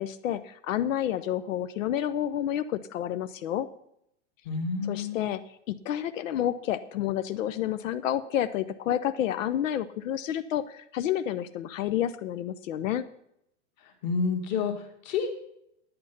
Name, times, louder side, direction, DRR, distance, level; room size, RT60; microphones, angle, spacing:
voice 1, 0.0-3.7 4.9-5.4 5.7-13.0, left 11 dB, 90° left, 12 dB, 0.7 m, -29 dB
voice 2, 4.4-5.3 14.0-15.3, left 5 dB, 35° left, 5 dB, 1.7 m, -29 dB
10.0 x 8.8 x 5.7 m, 0.75 s
supercardioid pair, 180°, 37 cm